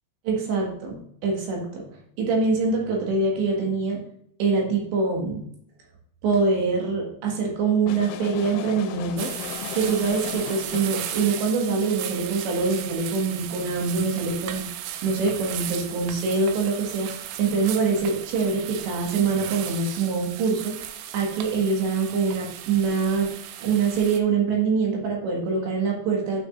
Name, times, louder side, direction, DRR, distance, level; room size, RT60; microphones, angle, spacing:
voice 1, 0.3-1.9 2.2-4.0 4.4-5.5 6.2-9.4 9.7-14.7 15.0-20.8 21.1-23.3 23.6-26.4, right 4 dB, 70° right, 0 dB, 3.7 m, -24 dB
sound 1, 7.9-11.0, left 12 dB, 85° left, 3.1 m, -35 dB
sound 2, 9.2-24.2, right 11 dB, 85° right, 3.1 m, -36 dB
9.5 x 6.1 x 2.5 m, 0.66 s
omnidirectional pair, 5.7 m